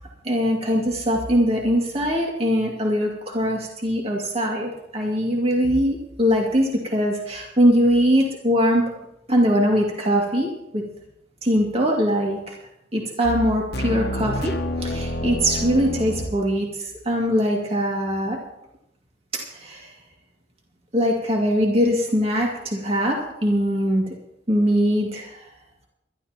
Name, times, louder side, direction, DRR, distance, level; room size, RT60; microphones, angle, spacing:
voice 1, 0.2-8.9 9.3-10.8 11.4-12.6 12.9-14.5 14.8-18.4 19.3-19.9 20.9-24.0 24.5-25.5, equal, 35° right, -1 dB, 2.2 m, -22 dB
sound 1, 13.2-16.4, left 1 dB, 60° left, 1.0 m, -28 dB
22.5 x 12.5 x 2.9 m, 0.84 s
head